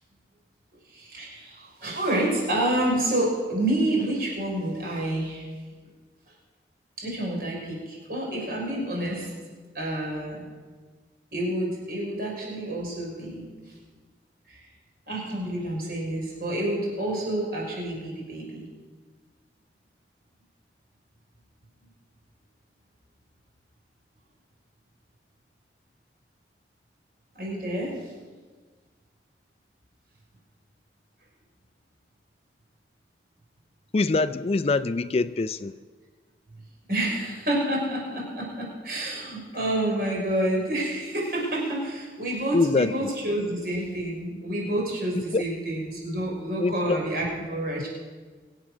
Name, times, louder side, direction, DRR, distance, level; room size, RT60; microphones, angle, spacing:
voice 1, 0.9-5.5 7.0-9.3 9.7-10.4 11.3-13.5 14.5-14.6 15.1-18.7 27.3-28.1 36.9-47.9, right 1 dB, 55° right, 6.0 m, -28 dB
voice 2, 33.9-35.7 42.5-43.1 45.3-45.4 46.6-47.0, left 3 dB, 35° left, 0.4 m, -24 dB
24.5 x 8.3 x 6.3 m
head